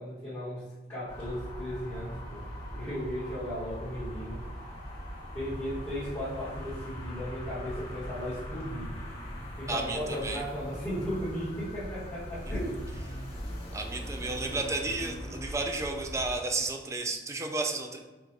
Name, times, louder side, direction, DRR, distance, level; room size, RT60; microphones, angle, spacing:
voice 1, 0.0-2.4 2.7-4.4 5.3-9.0 9.6-12.8, equal, 15° left, -12 dB, 1.4 m, -36 dB
sound 1, 1.1-16.4, equal, 35° left, 1.4 m, -40 dB
voice 2, 9.7-10.4 13.7-18.0, right 3 dB, 15° right, 3 dB, 0.3 m, -32 dB
4.7 x 2.6 x 3.2 m, 1.2 s
head